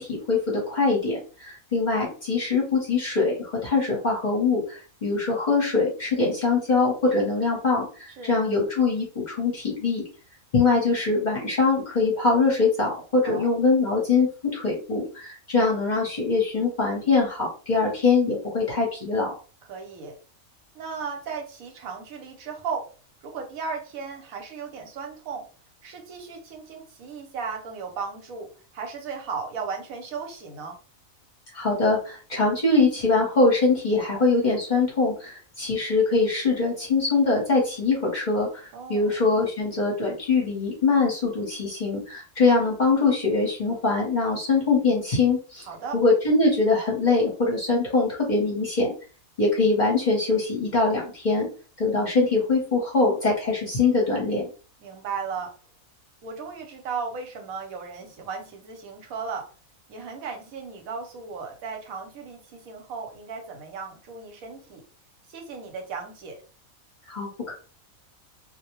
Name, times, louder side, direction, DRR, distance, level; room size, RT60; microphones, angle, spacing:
voice 1, 0.0-10.0 10.5-19.3 31.5-45.7 45.9-48.9 49.4-51.5 51.8-54.4 67.1-67.5, left 3 dB, 40° left, -3 dB, 0.8 m, -23 dB
voice 2, 19.7-20.2 20.7-22.9 23.2-25.5 25.8-30.8 38.7-39.2 45.7-46.0 54.8-55.5 56.2-59.5 59.9-64.8 65.3-66.4, right 5 dB, 80° right, 3 dB, 1.1 m, -36 dB
2.4 x 2.1 x 2.9 m, 0.37 s
omnidirectional pair, 1.4 m